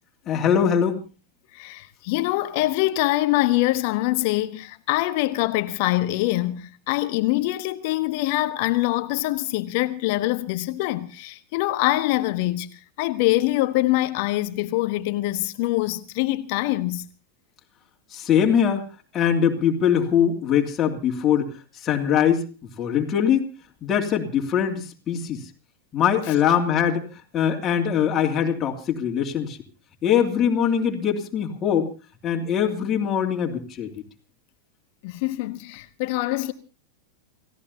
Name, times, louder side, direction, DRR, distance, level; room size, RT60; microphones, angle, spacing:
voice 1, 0.3-1.0 18.1-18.9 19.1-21.4 21.8-22.5 22.8-23.4 23.8-25.4 25.9-27.0 27.3-29.6 30.0-31.9 32.2-33.9, left 8 dB, 25° left, 2.9 m, -22 dB
voice 2, 1.6-12.7 13.0-17.0 26.2-26.3 35.0-36.5, left 17 dB, 45° left, 1.2 m, -24 dB
29.5 x 16.5 x 2.8 m
figure-of-eight pair, 90°, 0 cm